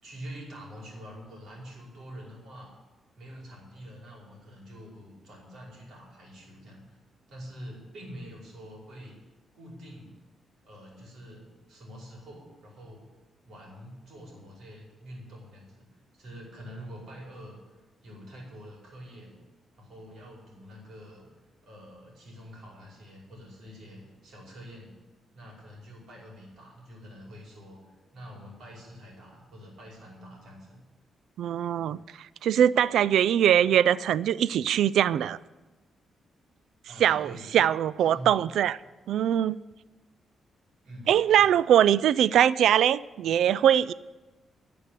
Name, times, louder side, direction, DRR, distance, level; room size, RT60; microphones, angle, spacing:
voice 1, 0.0-2.7 3.2-7.0 7.3-9.2 9.5-10.2 10.6-13.1 13.4-15.9 16.1-19.4 19.8-21.3 21.6-25.0 25.3-27.8 28.1-30.8 36.9-37.6 38.0-38.3 40.8-41.5, equal, 65° right, 5.1 m, -46 dB
voice 2, 31.4-35.4 37.0-38.8 39.1-39.6 41.1-43.9, right 10 dB, 80° right, 0.3 m, -22 dB
12.5 x 6.8 x 10.0 m
cardioid pair, 140°, 0 cm